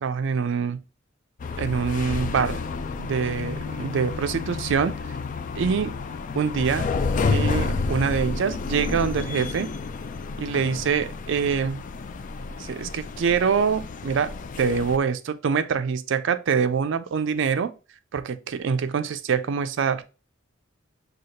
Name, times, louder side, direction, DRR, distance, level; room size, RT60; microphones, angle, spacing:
voice 1, 0.0-0.8 1.6-2.6 3.0-4.9 5.6-5.9 6.4-6.9 7.2-9.7 10.4-11.8 12.6-17.7 18.1-20.0, right 6 dB, 65° right, 0.4 m, -25 dB
sound 1, 1.4-15.0, left 4 dB, 40° left, 0.3 m, -30 dB
6.3 x 2.3 x 2.8 m
head